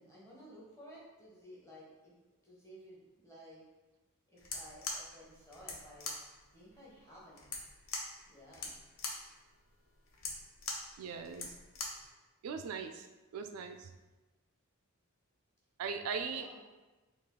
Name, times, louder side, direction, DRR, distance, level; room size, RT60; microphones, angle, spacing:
voice 1, 0.0-2.1 2.4-3.6 4.3-6.1 6.5-7.5 8.3-8.7 16.3-16.6, equal, 15° left, -6 dB, 0.9 m, -55 dB
sound 1, 4.4-12.1, left 3 dB, 65° left, 0.5 m, -43 dB
voice 2, 11.0-11.6 12.4-13.1 13.3-13.9 15.8-16.5, right 5 dB, 80° right, 7 dB, 0.3 m, -39 dB
3.3 x 2.4 x 3.7 m, 1.1 s
head